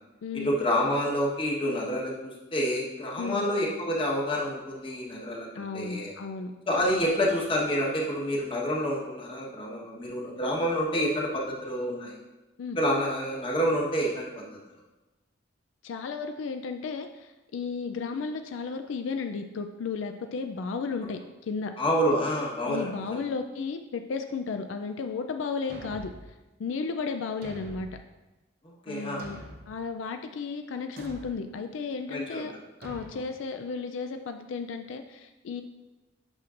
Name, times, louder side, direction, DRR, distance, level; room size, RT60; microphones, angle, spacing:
voice 1, 0.3-6.1 6.7-12.1 12.8-14.5 21.8-23.2 28.9-29.4 32.1-32.5, equal, 25° left, -3 dB, 1.2 m, -28 dB
voice 2, 5.5-6.5 12.6-12.8 15.8-21.7 22.6-26.1 26.6-27.9 28.9-29.4 29.7-32.5 32.8-35.6, left 5 dB, 80° left, 6 dB, 0.4 m, -34 dB
Thump thud, 25.7-26.3 27.4-28.0 29.2-29.7 31.0-31.4 32.8-33.1, right 1 dB, 50° right, 0.7 m, -44 dB
8.7 x 6.0 x 2.5 m, 1.1 s
head